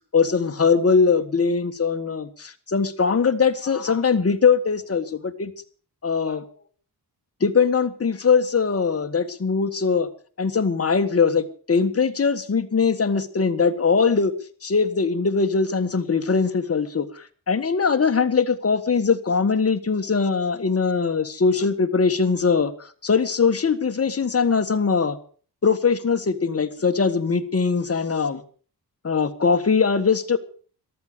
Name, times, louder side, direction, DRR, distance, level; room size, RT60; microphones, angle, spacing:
voice 1, 0.1-5.5 6.0-6.4 7.4-10.1 10.4-14.3 14.6-25.2 25.6-28.4 29.0-30.4, left 5 dB, 35° left, 8 dB, 1.6 m, -21 dB
14.0 x 12.5 x 6.8 m, 0.43 s
wide cardioid pair, 115°, 40 cm